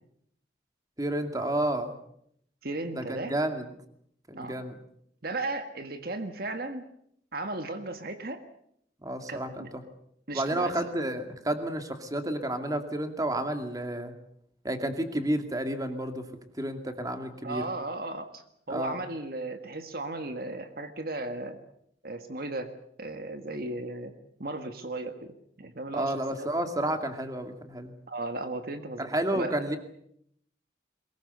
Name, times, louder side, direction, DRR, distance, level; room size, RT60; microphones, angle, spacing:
voice 1, 1.0-2.0 2.9-3.7 4.3-4.7 9.0-9.7 10.3-14.1 14.6-16.2 16.6-17.6 18.7-19.0 25.9-27.9 29.0-29.8, right 1 dB, 20° right, 7 dB, 2.4 m, -31 dB
voice 2, 2.6-3.4 4.3-4.6 5.2-6.9 7.3-8.4 9.3-9.7 10.3-10.7 17.4-21.6 22.0-22.7 23.0-24.1 24.4-26.5 28.1-29.1 29.3-29.7, right 2 dB, 55° right, 8 dB, 1.7 m, -36 dB
23.0 x 21.0 x 8.0 m, 0.71 s
head